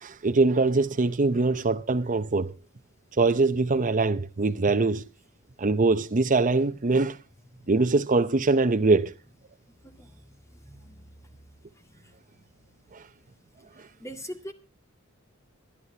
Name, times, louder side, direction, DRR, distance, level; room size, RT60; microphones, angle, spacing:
voice 1, 0.0-2.5 3.2-5.0 5.6-7.2 7.7-9.1 12.9-13.0, right 3 dB, 40° right, 0.7 m, -23 dB
voice 2, 9.8-10.2 10.6-11.4 11.9-12.1 12.3-12.5 13.8-14.5, equal, 15° left, 2.0 m, -43 dB
25.5 x 9.7 x 2.8 m
head